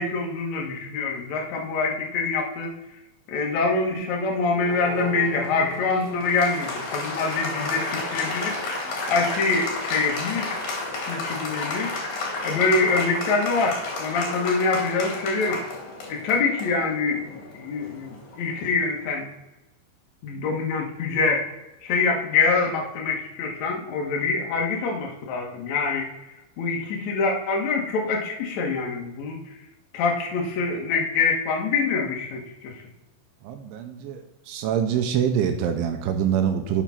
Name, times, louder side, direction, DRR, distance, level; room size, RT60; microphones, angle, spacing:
voice 1, 0.0-2.7 3.3-15.6 16.1-19.3 20.2-21.5 21.8-26.1 26.6-29.4 29.9-32.8, left 4 dB, 75° left, -1 dB, 1.6 m, -25 dB
Applause, 4.5-18.9, left 3 dB, 50° left, 2.7 m, -32 dB
voice 2, 33.4-34.2 34.5-36.8, right 8 dB, 80° right, 6 dB, 3.0 m, -24 dB
7.0 x 6.9 x 5.8 m, 1.0 s
omnidirectional pair, 5.7 m